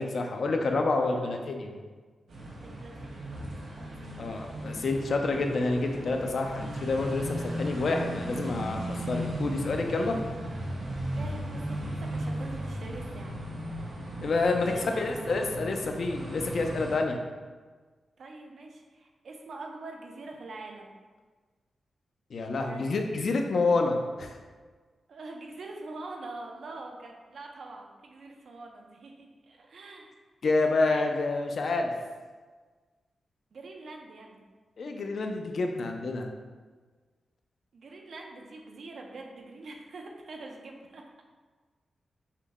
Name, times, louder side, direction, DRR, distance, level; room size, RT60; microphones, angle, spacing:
voice 1, 0.0-1.7 4.2-10.2 14.2-17.2 22.3-24.3 30.4-31.9 34.8-36.3, left 3 dB, 60° left, 3 dB, 0.5 m, -28 dB
voice 2, 1.0-1.5 2.6-4.7 11.1-13.3 13.8-14.2 14.7-15.6 18.2-20.9 22.6-22.9 25.1-30.1 30.8-31.1 33.5-34.4 37.7-41.2, right 2 dB, 65° right, 1 dB, 0.5 m, -45 dB
sound 1, 2.3-17.0, right 1 dB, 85° right, 0.9 m, -36 dB
5.6 x 2.1 x 3.5 m, 1.4 s
wide cardioid pair, 140°, 0 cm